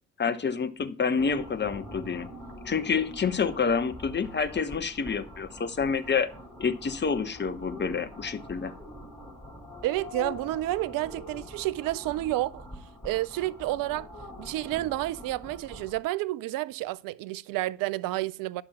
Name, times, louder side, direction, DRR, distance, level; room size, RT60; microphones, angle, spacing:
voice 1, 0.2-2.3 2.6-6.3 6.6-8.7, left 5 dB, 25° left, 1.1 m, -28 dB
sound 1, 1.2-16.0, left 1 dB, 5° left, 4.0 m, -44 dB
voice 2, 9.8-12.6 13.0-14.1 14.4-18.6, right 17 dB, 50° right, 0.6 m, -30 dB
10.0 x 5.9 x 6.0 m
figure-of-eight pair, 50°, 43 cm